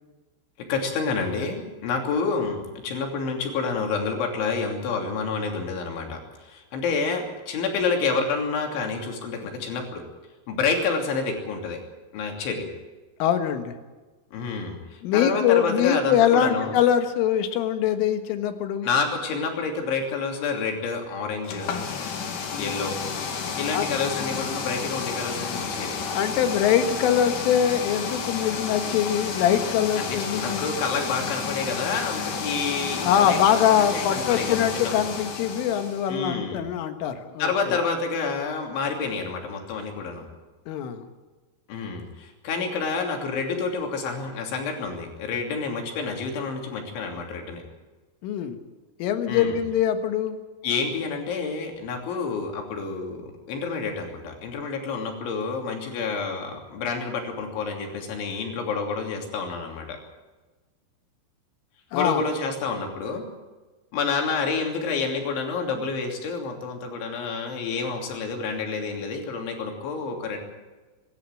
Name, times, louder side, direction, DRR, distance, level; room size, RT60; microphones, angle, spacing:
voice 1, 0.7-10.0 10.5-11.8 12.1-12.7 14.3-16.8 18.8-21.7 22.6-23.0 23.6-26.0 29.9-34.9 36.1-36.6 37.4-40.3 41.7-47.6 49.3-49.6 50.6-60.0 61.9-63.2 63.9-70.4, left 4 dB, 70° left, 2 dB, 5.3 m, -28 dB
voice 2, 13.2-13.8 15.0-18.9 22.5-22.8 23.7-23.9 26.1-30.6 33.0-37.8 40.7-41.1 48.2-48.6 49.0-50.4 61.9-62.2, left 9 dB, 90° left, 8 dB, 4.1 m, -23 dB
sound 1, 21.4-36.1, left 5 dB, 50° left, 3.1 m, -31 dB
24.5 x 12.5 x 9.0 m, 1.2 s
omnidirectional pair, 5.6 m